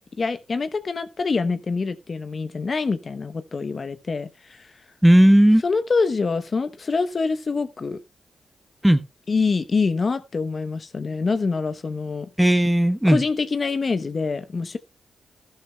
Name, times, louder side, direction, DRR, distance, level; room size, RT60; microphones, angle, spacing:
voice 1, 0.2-4.7 5.6-8.0 9.3-12.3 13.0-14.8, left 4 dB, 50° left, 0.8 m, -25 dB
voice 2, 5.0-5.6 8.8-9.0 12.4-13.2, right 1 dB, 5° right, 1.1 m, -15 dB
13.0 x 11.5 x 2.2 m
supercardioid pair, 50°, 0 cm